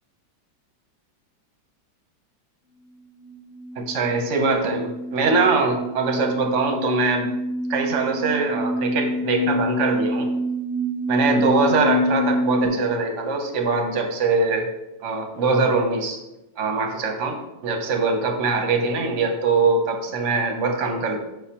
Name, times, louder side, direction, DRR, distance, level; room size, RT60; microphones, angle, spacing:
sound 1, 3.2-12.7, left 1 dB, 50° left, 0.9 m, -26 dB
voice 1, 3.8-7.3 7.7-10.3 11.1-14.7 15.0-16.2 16.6-21.2, right 4 dB, 55° right, 3 dB, 0.9 m, -22 dB
6.1 x 5.5 x 2.9 m, 0.94 s
omnidirectional pair, 2.1 m